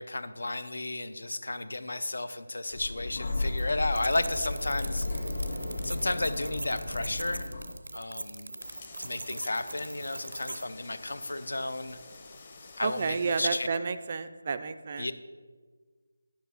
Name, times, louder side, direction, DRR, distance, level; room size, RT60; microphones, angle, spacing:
voice 1, 0.0-5.1 5.8-7.5 7.9-8.5 9.0-12.0 12.8-13.7 15.0-15.1, left 2 dB, 80° left, 12 dB, 0.7 m, -33 dB
Sliding door, 2.7-7.7, left 2 dB, 55° left, 1.7 m, -34 dB
sound 1, 3.9-10.7, right 2 dB, 85° right, 0.6 m, -41 dB
sound 2, 8.6-13.7, left 3 dB, 25° left, 0.7 m, -50 dB
voice 2, 12.8-15.1, right 5 dB, 25° right, 10 dB, 0.3 m, -31 dB
10.5 x 5.9 x 5.5 m, 1.5 s
figure-of-eight pair, 175°, 0 cm